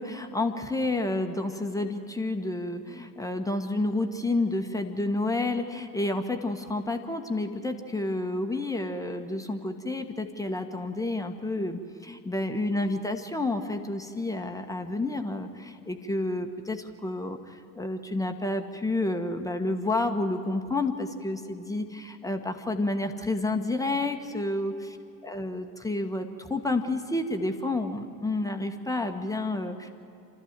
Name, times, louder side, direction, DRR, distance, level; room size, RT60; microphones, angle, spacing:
voice 1, 0.0-24.7 25.2-29.9, left 2 dB, 5° left, 5 dB, 1.3 m, -30 dB
27.5 x 13.5 x 7.5 m, 2.7 s
figure-of-eight pair, 65°, 46 cm